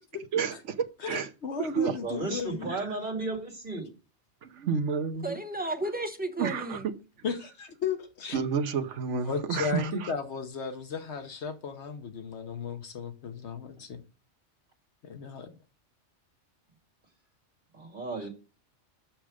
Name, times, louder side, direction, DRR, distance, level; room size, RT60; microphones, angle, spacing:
voice 1, 0.3-1.3 1.6-2.0 2.7-2.9 4.6-5.4 6.4-6.9 8.3-10.1, right 6 dB, 80° right, 1.2 m, -30 dB
voice 2, 1.0-2.7 7.2-8.4 9.1-14.0 15.0-15.5, left 6 dB, 65° left, 1.2 m, -35 dB
voice 3, 2.0-3.9 17.7-18.3, right 2 dB, 40° right, 2.8 m, -34 dB
voice 4, 5.2-6.9, right 1 dB, 10° right, 0.8 m, -33 dB
6.4 x 6.0 x 4.9 m
omnidirectional pair, 1.2 m